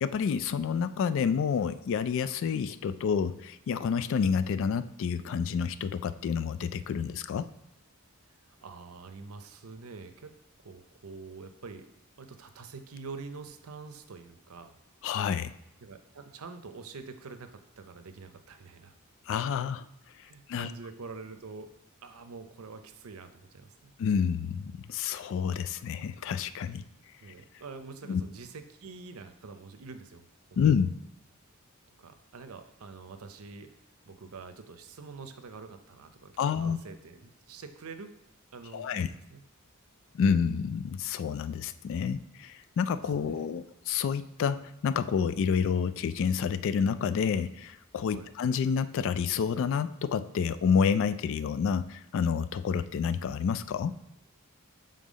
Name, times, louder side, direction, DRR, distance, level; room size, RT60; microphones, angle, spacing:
voice 1, 0.0-7.5 15.0-15.5 19.3-19.9 20.2-20.7 24.0-26.8 28.1-28.2 30.6-30.9 36.4-36.8 38.7-39.1 40.1-54.0, left 6 dB, 65° left, 14 dB, 0.3 m, -29 dB
voice 2, 8.6-10.3 10.6-11.9 12.2-14.7 15.8-18.9 20.2-21.7 22.0-23.9 27.2-30.2 30.5-30.6 32.0-33.7 34.1-38.1 38.5-39.4 43.2-43.5 48.1-48.3, right 4 dB, 90° right, 9 dB, 0.6 m, -46 dB
5.5 x 3.8 x 5.1 m, 0.81 s
head